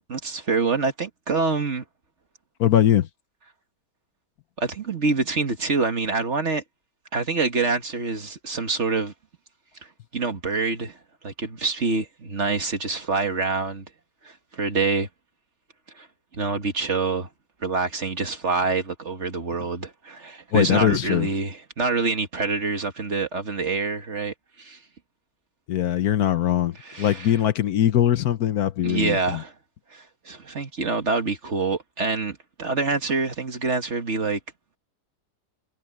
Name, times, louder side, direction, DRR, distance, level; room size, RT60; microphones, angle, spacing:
voice 1, 0.0-1.8 4.6-6.6 7.1-9.1 9.8-11.0 11.2-13.8 14.2-15.1 16.0-16.1 16.3-17.3 17.6-24.8 26.8-27.3 28.8-29.5 29.9-34.4, right 4 dB, 45° right, 1.9 m, -26 dB
voice 2, 2.6-3.1 20.5-21.3 25.7-29.4, left 11 dB, 65° left, 1.2 m, -21 dB
omnidirectional pair, 1.8 m